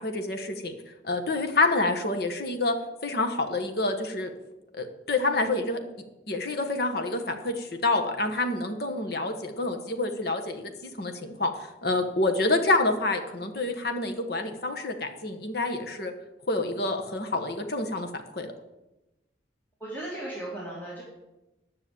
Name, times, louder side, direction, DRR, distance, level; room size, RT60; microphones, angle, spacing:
voice 1, 0.0-0.7 1.0-2.7 3.0-4.3 4.7-5.8 6.3-11.5 11.8-16.1 16.5-18.1 18.3-18.5, left 2 dB, 55° left, 5 dB, 1.3 m, -27 dB
voice 2, 19.8-21.0, right 1 dB, 10° left, -6 dB, 2.3 m, -36 dB
10.0 x 6.3 x 8.6 m, 1.0 s
head